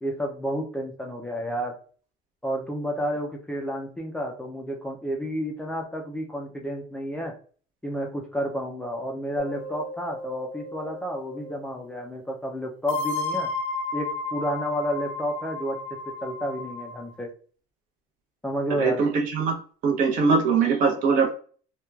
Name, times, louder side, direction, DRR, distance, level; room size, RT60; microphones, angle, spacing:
voice 1, 0.0-1.8 2.4-7.3 7.8-13.5 13.9-17.3 18.4-19.0, equal, 5° left, 1 dB, 0.3 m, -31 dB
sound 1, 9.4-11.7 12.9-17.1, left 3 dB, 75° left, 0.5 m, -33 dB
voice 2, 18.8-19.5 19.8-21.3, right 5 dB, 55° right, 2 dB, 0.7 m, -21 dB
2.9 x 2.2 x 2.2 m, 0.42 s
cardioid pair, 140°, 16 cm